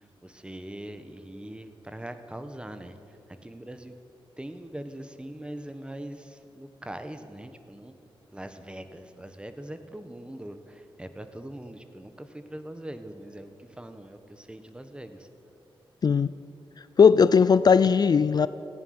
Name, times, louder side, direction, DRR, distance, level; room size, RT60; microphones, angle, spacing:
voice 1, 0.2-3.0 3.4-4.0 4.4-7.9 8.3-15.3, right 1 dB, 10° right, 9 dB, 1.3 m, -41 dB
voice 2, 17.0-18.5, left 6 dB, 45° left, 15 dB, 0.4 m, -18 dB
17.5 x 16.0 x 9.6 m, 2.8 s
wide cardioid pair, 135°, 9 cm